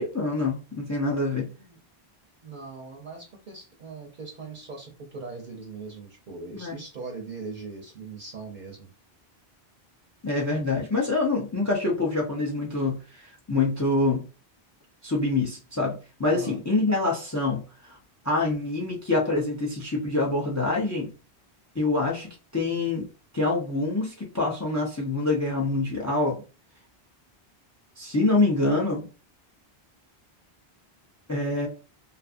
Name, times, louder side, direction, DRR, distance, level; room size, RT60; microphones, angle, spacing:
voice 1, 0.0-1.5 6.5-6.8 10.2-14.3 15.0-18.0 18.2-21.1 21.7-23.1 23.3-26.4 28.0-29.1 31.3-31.7, left 2 dB, 20° left, 0 dB, 0.5 m, -26 dB
voice 2, 1.3-1.8 2.4-8.9 16.3-16.6, right 4 dB, 55° right, 0 dB, 0.7 m, -40 dB
2.6 x 2.5 x 2.4 m, 0.33 s
omnidirectional pair, 1.0 m